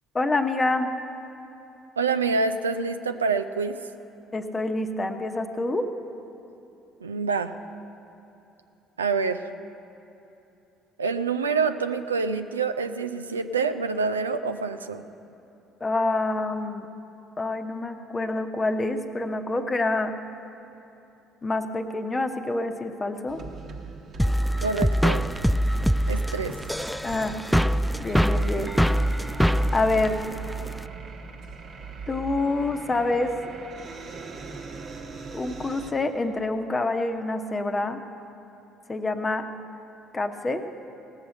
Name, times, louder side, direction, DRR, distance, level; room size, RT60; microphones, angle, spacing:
voice 1, 0.1-0.9 4.3-5.9 15.8-16.9 17.4-20.1 21.4-23.4 27.0-27.4 28.0-28.7 29.7-30.2 32.1-33.4 35.3-38.0 38.9-39.5 40.1-40.7, left 2 dB, 25° left, 6 dB, 0.9 m, -27 dB
voice 2, 2.0-3.8 7.0-7.5 9.0-9.5 11.0-15.0 24.6-25.3 26.1-26.6, right 4 dB, 85° right, 9 dB, 0.3 m, -26 dB
sound 1, 23.3-35.9, right 4 dB, 50° right, 1.1 m, -39 dB
sound 2, 24.2-30.8, equal, ahead, 0.3 m, -24 dB
17.5 x 7.0 x 6.5 m, 3.0 s
figure-of-eight pair, 55°, 0 cm